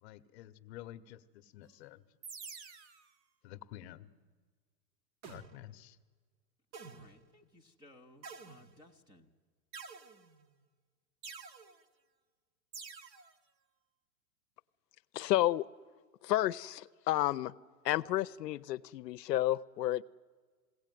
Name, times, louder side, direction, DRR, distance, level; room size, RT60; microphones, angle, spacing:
voice 1, 0.0-2.0 3.4-4.1 5.2-6.0, left 13 dB, 40° left, 11 dB, 0.9 m, -50 dB
sound 1, 2.2-3.1 5.2-5.8 6.7-7.3 8.2-9.0 9.7-10.5 11.2-11.8 12.7-13.3, right 5 dB, 40° right, 1.3 m, -49 dB
voice 2, 6.8-9.3, left 1 dB, 10° right, 4 dB, 0.5 m, -60 dB
voice 3, 15.1-15.7 16.2-17.5 17.8-20.0, left 14 dB, 75° left, 14 dB, 0.7 m, -31 dB
21.0 x 17.0 x 9.2 m, 1.5 s
hypercardioid pair, 145°, 50 cm